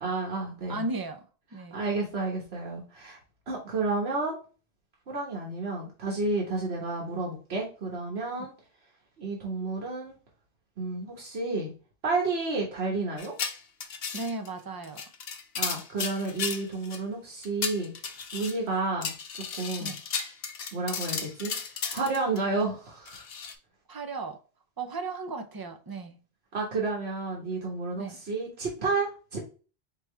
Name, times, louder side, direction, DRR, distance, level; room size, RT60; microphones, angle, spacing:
voice 1, 0.0-0.8 1.7-3.2 3.5-4.4 5.1-8.5 9.2-10.1 10.8-11.7 12.0-13.3 15.6-17.9 18.3-19.9 20.7-21.5 21.9-23.2 26.5-29.4, right 3 dB, 90° right, 1.5 m, -31 dB
voice 2, 0.7-1.8 14.1-15.0 19.8-19.9 23.9-24.4 24.8-26.2 27.9-28.2, right 3 dB, 25° right, 0.5 m, -35 dB
sound 1, 13.2-14.5 14.8-17.0 17.4-18.6 19.0-22.4 23.1-23.5, left 6 dB, 70° left, 0.9 m, -34 dB
4.9 x 3.0 x 3.2 m
omnidirectional pair, 1.0 m